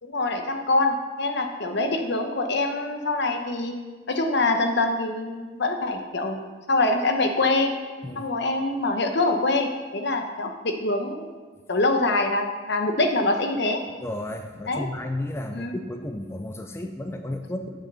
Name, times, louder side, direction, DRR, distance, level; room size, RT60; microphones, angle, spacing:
voice 1, 0.0-3.7 4.1-6.4 6.7-7.7 8.2-11.3 11.7-13.8 14.7-14.9 15.5-15.8, left 2 dB, 65° left, 5 dB, 1.0 m, -24 dB
voice 2, 14.0-17.7, left 1 dB, 15° left, 6 dB, 0.4 m, -33 dB
7.8 x 7.2 x 5.6 m, 1.4 s
head